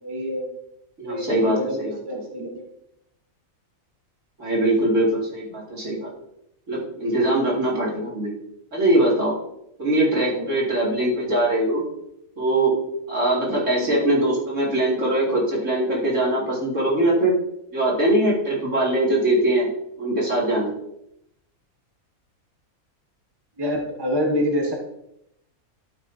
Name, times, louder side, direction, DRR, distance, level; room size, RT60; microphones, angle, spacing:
voice 1, 0.0-0.5 1.0-2.6 10.1-10.5 13.7-13.9 23.6-24.7, equal, 20° right, 0 dB, 1.1 m, -27 dB
voice 2, 1.0-2.2 4.4-6.1 6.7-8.3 8.7-9.3 9.8-11.8 12.4-12.8 13.1-17.4 17.7-19.7 20.0-20.7, right 1 dB, 55° right, -4 dB, 2.8 m, -22 dB
12.5 x 6.0 x 2.7 m, 0.79 s
omnidirectional pair, 1.5 m